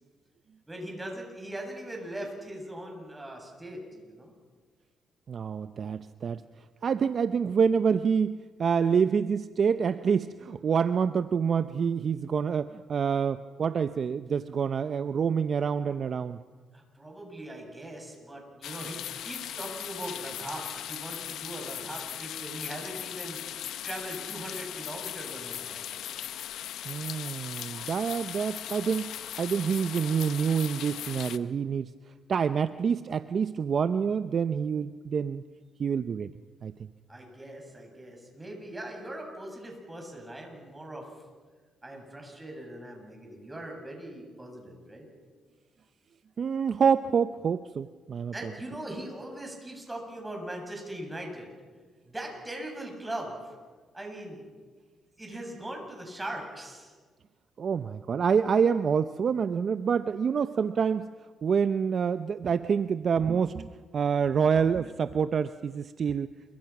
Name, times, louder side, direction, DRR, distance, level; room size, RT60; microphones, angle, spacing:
voice 1, 0.7-4.3 16.7-25.9 37.1-41.1 41.8-45.1 48.3-51.5 52.0-53.6 53.9-54.5 55.2-57.0, right 1 dB, 15° right, 1 dB, 7.7 m, -40 dB
voice 2, 5.3-6.4 6.8-16.4 26.8-31.9 32.3-35.4 35.8-36.3 36.6-36.9 46.4-48.3 57.6-61.1 61.4-66.3, right 6 dB, 50° right, 12 dB, 0.6 m, -27 dB
sound 1, 18.6-31.4, left 11 dB, 80° left, 1.0 m, -38 dB
28.5 x 24.0 x 6.0 m, 1.4 s
cardioid pair, 90°, 0 cm